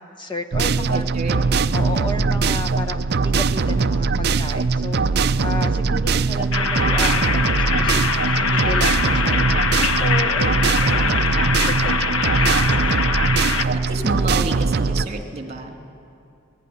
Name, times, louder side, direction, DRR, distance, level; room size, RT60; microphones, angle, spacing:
voice 1, 0.0-1.1 1.7-13.0, left 2 dB, 20° left, 6 dB, 1.4 m, -33 dB
sound 1, 0.5-15.0, right 4 dB, 50° right, 0.5 m, -21 dB
voice 2, 0.9-1.4 11.2-11.8 13.5-15.8, right 2 dB, 30° right, 3 dB, 2.5 m, -31 dB
sound 2, 6.5-13.6, left 5 dB, 65° left, 1.2 m, -22 dB
26.0 x 19.5 x 9.6 m, 2.5 s
head